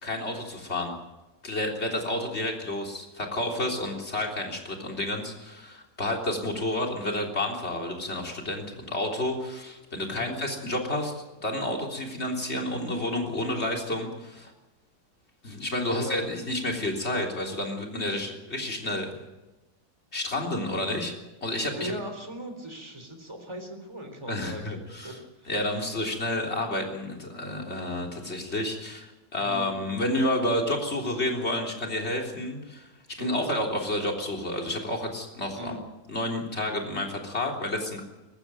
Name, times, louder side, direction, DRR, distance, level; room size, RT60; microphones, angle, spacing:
voice 1, 0.0-0.9 1.4-14.5 15.4-19.1 20.1-21.1 21.4-21.9 24.3-25.2 25.5-32.9 33.2-35.8 36.1-38.0, left 1 dB, 35° left, 1 dB, 3.8 m, -30 dB
voice 2, 15.9-16.3 20.7-20.8 21.8-25.2 25.4-25.5 29.4-29.7 33.2-33.5 35.5-35.8, right 1 dB, 15° right, 5 dB, 3.8 m, -38 dB
20.5 x 15.0 x 9.1 m, 1.1 s
omnidirectional pair, 1.9 m